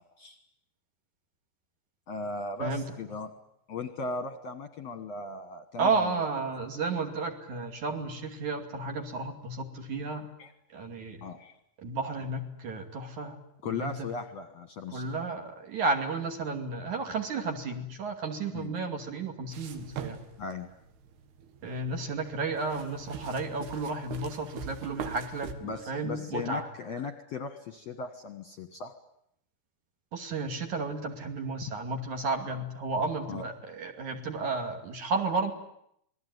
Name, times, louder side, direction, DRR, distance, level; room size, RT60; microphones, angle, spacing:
voice 1, 2.1-3.3 3.7-6.1 10.4-10.5 11.2-11.5 13.6-15.1 18.5-18.7 20.4-20.7 25.6-28.9 31.6-31.7 33.3-33.4, left 4 dB, 60° left, 8 dB, 1.9 m, -37 dB
voice 2, 5.8-10.3 10.7-11.2 11.8-13.4 13.6-14.1 14.9-20.2 21.6-26.7 30.1-35.5, right 3 dB, 50° right, 4 dB, 3.8 m, -32 dB
sound 1, 19.5-25.5, right 7 dB, 80° right, 3.9 m, -42 dB
27.5 x 20.5 x 9.5 m, 0.75 s
omnidirectional pair, 4.5 m